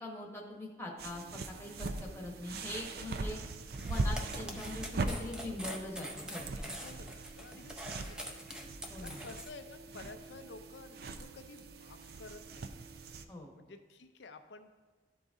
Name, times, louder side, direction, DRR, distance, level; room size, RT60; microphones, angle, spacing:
voice 1, 0.0-3.4 3.9-6.7 8.9-9.2 13.3-13.5, left 1 dB, 15° left, -1 dB, 1.1 m, -43 dB
sound 1, 1.0-13.2, right 3 dB, 55° right, 0.4 m, -41 dB
sound 2, 3.7-9.5, equal, 5° right, 0.6 m, -44 dB
voice 2, 6.6-8.5 9.0-12.7 13.5-14.7, left 3 dB, 75° left, 8 dB, 0.6 m, -52 dB
11.5 x 3.9 x 3.6 m, 1.3 s
head